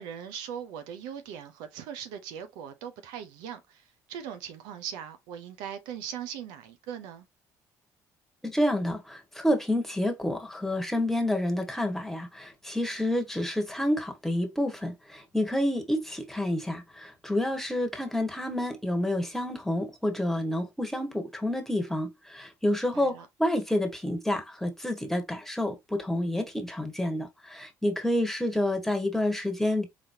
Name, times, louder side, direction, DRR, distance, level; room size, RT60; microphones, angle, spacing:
voice 1, 0.0-7.3 22.7-23.3, right 9 dB, 85° right, 0.7 m, -40 dB
voice 2, 8.4-29.9, left 1 dB, 5° left, 1.5 m, -29 dB
4.1 x 3.1 x 2.7 m
supercardioid pair, 80°, 7 cm